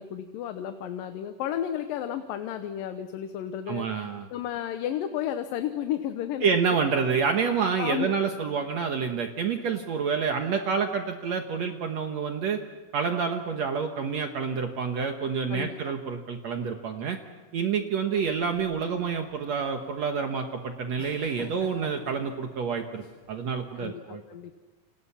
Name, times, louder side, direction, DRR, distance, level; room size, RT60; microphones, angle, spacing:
voice 1, 0.0-6.9 7.8-8.1 15.5-15.9 23.7-24.6, left 10 dB, 85° left, 8 dB, 2.7 m, -33 dB
voice 2, 3.7-4.3 6.4-12.6 12.9-17.2 17.5-24.2, right 6 dB, 60° right, 4 dB, 2.3 m, -28 dB
sound 1, 18.1-23.7, left 2 dB, 40° left, 3.7 m, -48 dB
29.5 x 26.5 x 5.8 m, 1.3 s
omnidirectional pair, 3.9 m